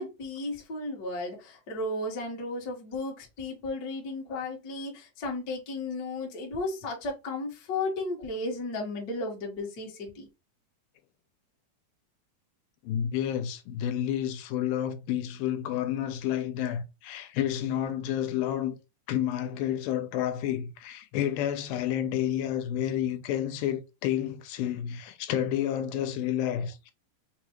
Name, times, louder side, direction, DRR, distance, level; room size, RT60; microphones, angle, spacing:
voice 1, 0.0-10.3, left 2 dB, 55° left, 1.1 m, -34 dB
voice 2, 12.8-18.8 19.1-26.9, left 10 dB, 85° left, 2.4 m, -30 dB
5.8 x 2.3 x 3.0 m
omnidirectional pair, 4.2 m